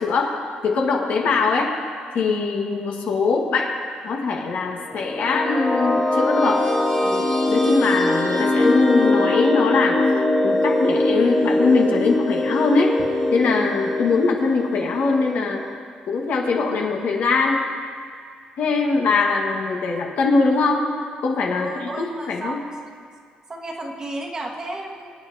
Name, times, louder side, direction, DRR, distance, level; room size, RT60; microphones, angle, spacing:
voice 1, 0.0-1.7 2.1-3.7 4.0-6.7 7.0-10.0 10.4-13.0 13.3-15.6 16.1-17.7 18.6-20.8 21.2-22.6, left 4 dB, 65° left, 0 dB, 1.6 m, -22 dB
sound 1, 4.9-15.7, left 2 dB, 20° left, 1.2 m, -22 dB
voice 2, 21.5-22.7 23.5-25.1, right 2 dB, 25° right, -1 dB, 1.4 m, -33 dB
24.5 x 9.9 x 2.8 m, 2.1 s
cardioid pair, 155°, 3 cm